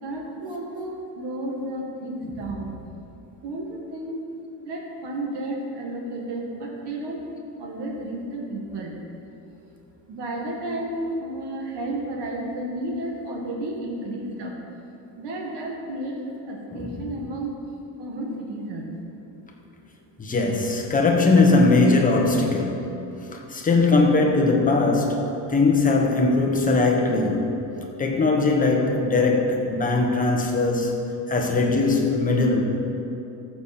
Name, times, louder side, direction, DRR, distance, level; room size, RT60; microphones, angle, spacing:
voice 1, 0.0-2.7 3.4-3.7 3.9-4.2 4.7-7.2 7.6-8.9 10.1-14.5 15.2-16.2 16.5-17.5 18.0-18.9, right 1 dB, 60° right, -1 dB, 1.9 m, -32 dB
voice 2, 20.2-22.9 23.3-27.7 28.0-32.6, left 3 dB, 20° left, 1 dB, 1.0 m, -20 dB
14.0 x 7.2 x 4.3 m, 2.8 s
cardioid pair, 175°, 44 cm